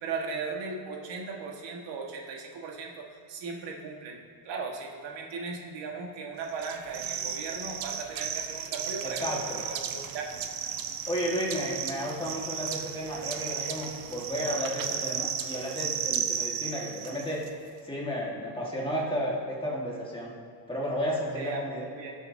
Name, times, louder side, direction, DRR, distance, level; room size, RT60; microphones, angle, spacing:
voice 1, 0.0-4.2 4.4-10.4 21.3-21.6 22.0-22.1, right 4 dB, 80° right, 0 dB, 1.6 m, -37 dB
sound 1, 6.6-17.5, right 8 dB, 55° right, 0.7 m, -34 dB
voice 2, 9.0-9.6 11.1-17.4 17.8-20.3 20.7-21.9, equal, 10° left, -4 dB, 1.5 m, -32 dB
17.5 x 7.0 x 2.7 m, 2.4 s
cardioid pair, 165°, 43 cm